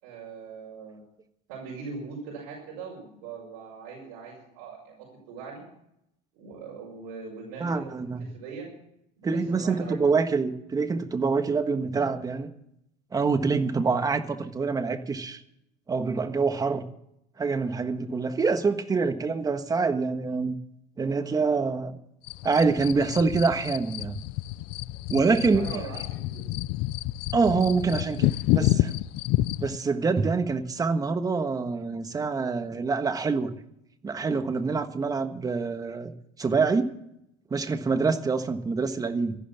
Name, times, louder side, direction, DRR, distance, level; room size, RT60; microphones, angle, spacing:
voice 1, 0.0-1.0 1.5-5.6 6.3-7.9 8.3-8.7 9.2-10.0 25.5-26.0 26.3-26.4 27.9-28.1, right 5 dB, 75° right, -3 dB, 5.9 m, -41 dB
voice 2, 7.6-8.3 9.2-12.5 13.1-15.4 15.9-16.8 17.4-20.6 21.0-22.0 22.4-24.2 25.1-25.8 27.3-28.9 29.6-33.5 34.0-36.1 36.4-36.9 37.5-39.4, right 4 dB, 20° right, 9 dB, 1.4 m, -26 dB
sound 1, 22.2-29.8, left 17 dB, 60° left, 0.5 m, -29 dB
14.5 x 11.5 x 7.1 m, 0.78 s
supercardioid pair, 125°, 19 cm